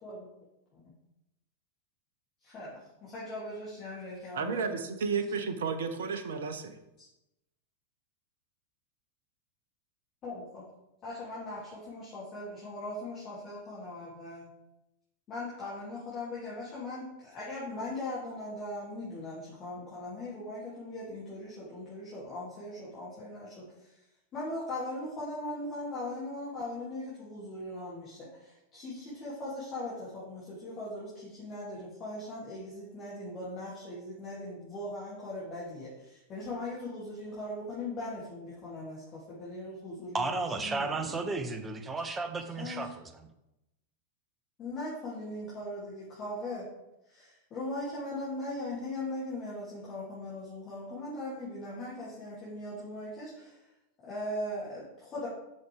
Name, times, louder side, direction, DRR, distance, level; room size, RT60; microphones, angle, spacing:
voice 1, 2.4-4.8 10.2-10.6 11.0-14.5 15.3-24.0 24.3-41.1 42.6-42.9 44.6-46.7 47.1-53.7 54.0-55.3, left 1 dB, 30° left, -8 dB, 3.0 m, -39 dB
voice 2, 4.3-6.8, right 5 dB, 60° right, 8 dB, 0.8 m, -32 dB
voice 3, 40.1-43.3, right 3 dB, 15° right, 8 dB, 1.0 m, -33 dB
7.8 x 6.3 x 3.6 m, 0.90 s
figure-of-eight pair, 90°, 0 cm